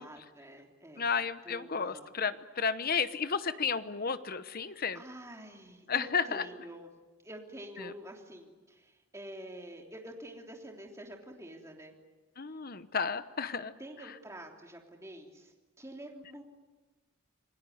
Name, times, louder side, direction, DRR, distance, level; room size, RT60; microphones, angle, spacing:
voice 1, 0.0-1.1 1.4-2.1 4.6-6.9 7.2-12.0 13.8-16.4, right 1 dB, 15° right, 1 dB, 3.2 m, -47 dB
voice 2, 1.0-5.0 5.9-6.4 7.8-7.9 12.4-13.7, left 6 dB, 40° left, 12 dB, 1.0 m, -32 dB
27.5 x 19.5 x 9.4 m, 1.3 s
head